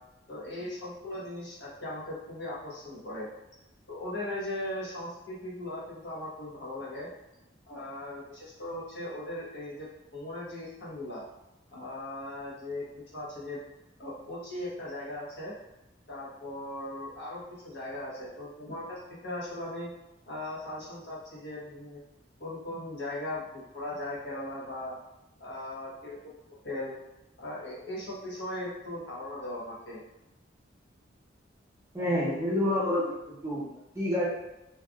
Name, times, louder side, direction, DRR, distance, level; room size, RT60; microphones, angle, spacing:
voice 1, 0.3-3.3 3.9-7.1 7.7-9.9 10.1-11.2 11.7-12.8 13.1-13.6 14.0-15.5 16.1-19.9 20.3-22.0 22.4-24.9 25.4-26.3 26.6-26.9 27.4-30.0, left 1 dB, 65° left, -7 dB, 1.1 m, -38 dB
voice 2, 31.9-33.1 33.4-33.6 33.9-34.2, left 1 dB, 15° right, -7 dB, 0.6 m, -27 dB
3.3 x 2.5 x 2.2 m, 0.93 s
head